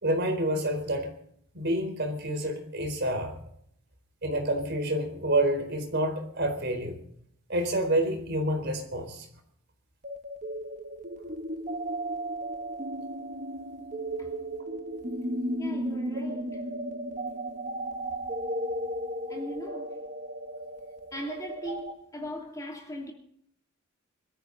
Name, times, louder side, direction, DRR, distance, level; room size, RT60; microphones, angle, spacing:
voice 1, 0.0-1.1 1.5-3.3 4.2-7.0 7.5-9.3, right 1 dB, 50° right, 4.3 m, -28 dB
sound 1, 10.0-21.9, right 1 dB, 35° right, 1.4 m, -35 dB
voice 2, 15.6-16.5 19.3-20.0 21.1-23.1, equal, 15° left, 2.8 m, -39 dB
24.0 x 13.5 x 4.1 m
head